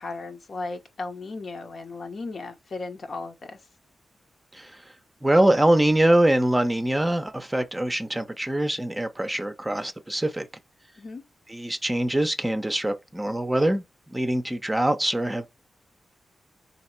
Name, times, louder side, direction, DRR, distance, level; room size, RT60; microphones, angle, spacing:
voice 1, 0.0-3.6 11.0-11.2, left 3 dB, 60° left, 0.9 m, -36 dB
voice 2, 5.2-10.5 11.5-13.8 14.1-15.5, right 1 dB, 15° right, 0.6 m, -23 dB
3.5 x 2.9 x 4.3 m
cardioid pair, 70°, 0 cm